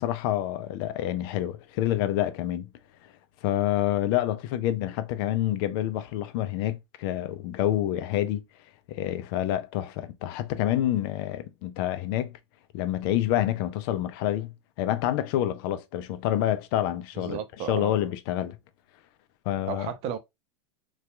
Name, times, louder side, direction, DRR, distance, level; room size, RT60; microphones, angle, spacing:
voice 1, 0.0-2.7 3.4-8.4 8.9-12.3 12.7-18.6 19.5-19.9, left 12 dB, 55° left, 0.5 m, -28 dB
voice 2, 17.2-17.9 19.7-20.2, right 8 dB, 45° right, 0.6 m, -33 dB
2.7 x 2.3 x 2.2 m
hypercardioid pair, 105°, 15 cm